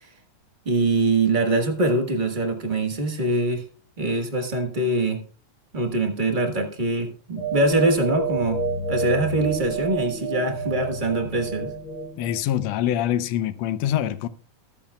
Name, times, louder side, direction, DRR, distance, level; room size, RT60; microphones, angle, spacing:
voice 1, 0.6-3.6 4.0-5.2 5.7-8.6 8.9-11.7, right 2 dB, 75° right, 0.4 m, -23 dB
sound 1, 7.4-12.4, right 4 dB, 55° left, 1.6 m, -29 dB
voice 2, 12.2-14.3, left 11 dB, 75° left, 1.7 m, -24 dB
22.0 x 8.5 x 2.3 m
omnidirectional pair, 3.4 m